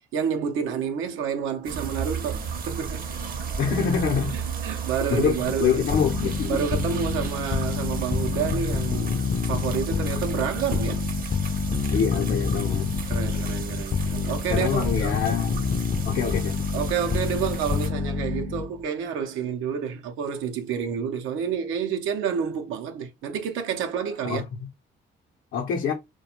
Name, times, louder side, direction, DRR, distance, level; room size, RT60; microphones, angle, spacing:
voice 1, 0.1-3.1 4.3-5.8 6.5-9.2 9.5-11.1 13.1-15.2 16.7-24.4, right 7 dB, 90° right, 0.6 m, -29 dB
sound 1, 1.6-17.9, right 6 dB, 45° right, 0.6 m, -34 dB
voice 2, 3.6-4.4 5.1-6.6 8.4-8.5 11.9-12.9 14.5-15.5 16.0-16.7 24.2-24.4 25.5-25.9, left 7 dB, 75° left, 0.6 m, -25 dB
sound 2, 5.9-18.8, left 5 dB, 30° left, 0.4 m, -27 dB
2.4 x 2.2 x 2.8 m
cardioid pair, 90°, 20 cm